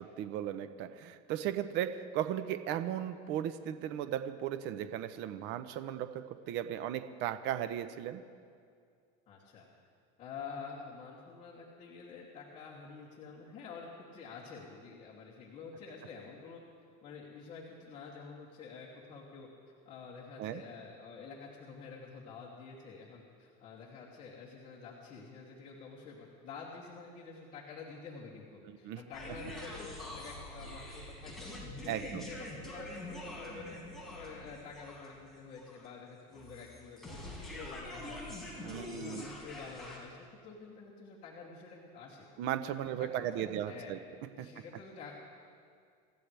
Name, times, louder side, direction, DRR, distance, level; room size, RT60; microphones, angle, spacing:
voice 1, 0.0-8.2 20.4-20.6 28.7-29.0 31.9-32.3 38.6-39.3 42.4-44.0 44.4-44.5, right 11 dB, 60° right, 10 dB, 0.9 m, -36 dB
voice 2, 9.3-9.7 10.2-16.6 17.0-19.5 19.8-33.7 34.1-40.2 40.4-42.3 42.6-43.9 44.3-45.1, left 5 dB, 35° left, -7 dB, 2.9 m, -48 dB
sound 1, 29.1-40.0, left 1 dB, ahead, 5.2 m, -45 dB
27.5 x 14.5 x 3.5 m, 2.2 s
cardioid pair, 135°, 21 cm